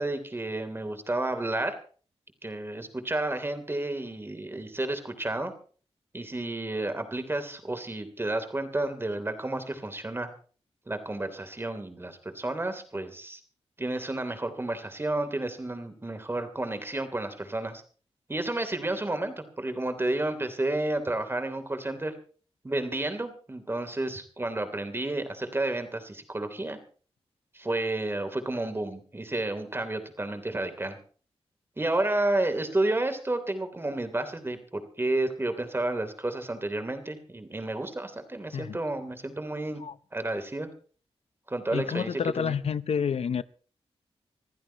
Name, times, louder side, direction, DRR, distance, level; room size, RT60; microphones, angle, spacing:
voice 1, 0.0-1.7 2.4-5.5 6.1-10.3 10.9-13.4 13.8-17.8 18.3-22.1 22.6-26.8 27.5-31.0 31.8-39.8 40.1-40.7 41.5-42.5, right 2 dB, 20° right, 3.1 m, -31 dB
voice 2, 41.7-43.4, left 7 dB, 75° left, 0.6 m, -29 dB
26.0 x 15.0 x 2.9 m
wide cardioid pair, 110°, 11 cm